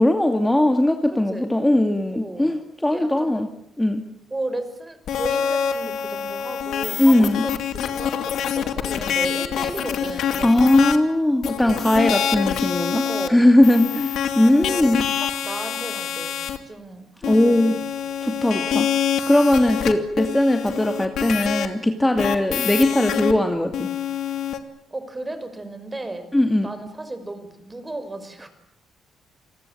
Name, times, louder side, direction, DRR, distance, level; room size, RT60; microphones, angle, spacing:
voice 1, 0.0-3.5 3.8-4.0 7.0-7.4 10.4-13.0 13.3-15.0 17.2-17.8 18.2-18.9 19.3-23.9 26.3-26.7, left 1 dB, 10° left, 5 dB, 2.5 m, -19 dB
voice 2, 1.1-1.5 2.1-2.5 2.9-3.4 4.3-7.5 7.8-10.9 11.6-12.1 13.0-13.4 14.5-17.8 18.3-18.9 24.9-26.3 26.6-28.5, right 2 dB, 20° right, 10 dB, 5.3 m, -35 dB
sound 1, 5.1-11.0 11.4-13.3 13.6-16.6 17.2-21.7 22.2-23.3 23.7-24.6, left 8 dB, 75° left, 2.5 m, -26 dB
29.0 x 20.0 x 8.7 m, 0.74 s
cardioid pair, 90°, 0 cm